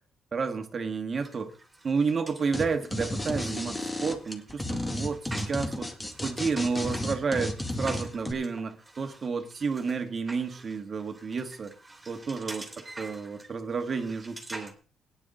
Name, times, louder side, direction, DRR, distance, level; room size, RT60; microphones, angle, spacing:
voice 1, 0.3-1.5 1.8-5.2 5.5-5.9 6.2-11.7 12.1-12.6 13.0-14.7, right 5 dB, 40° right, 6 dB, 1.6 m, -31 dB
sound 1, 1.2-14.7, right 2 dB, 15° right, 3.0 m, -46 dB
sound 2, 2.5-2.6 2.9-8.3, left 1 dB, 15° left, 2.1 m, -32 dB
17.0 x 9.9 x 3.8 m, 0.40 s
cardioid pair, 90°, 0 cm